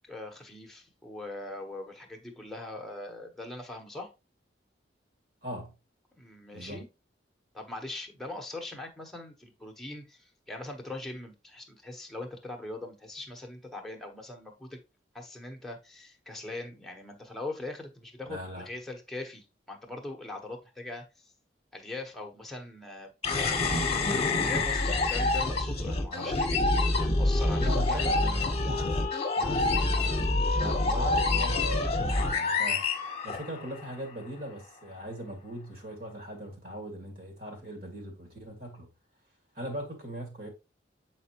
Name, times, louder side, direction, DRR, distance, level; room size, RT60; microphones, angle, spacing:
voice 1, 0.1-4.1 6.2-6.9 7.5-14.8 15.1-21.0 21.7-23.1 23.4-28.3, left 2 dB, ahead, 1.1 m, -41 dB
voice 2, 5.4-5.7 6.5-6.8 18.3-18.7 26.1-26.4 27.6-29.0 29.4-30.3 30.6-38.9 39.5-40.5, equal, 55° right, 2.1 m, -40 dB
sound 1, 23.2-33.9, left 2 dB, 35° left, 1.1 m, -27 dB
7.7 x 4.3 x 3.0 m
head